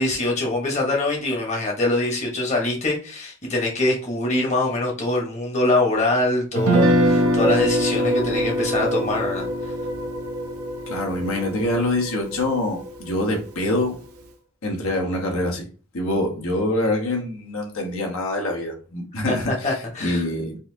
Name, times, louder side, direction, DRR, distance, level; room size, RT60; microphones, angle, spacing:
voice 1, 0.0-9.7 19.3-20.2, left 2 dB, 30° left, 0 dB, 1.0 m, -24 dB
Guitar, 6.6-12.7, equal, 85° right, 0.6 m, -24 dB
sound 1, 6.7-13.9, right 1 dB, 15° right, 0.4 m, -29 dB
voice 2, 10.9-14.0 14.6-15.7 15.9-19.7 20.0-20.6, left 1 dB, 75° left, 1 dB, 1.0 m, -25 dB
4.0 x 2.5 x 2.7 m, 0.38 s
head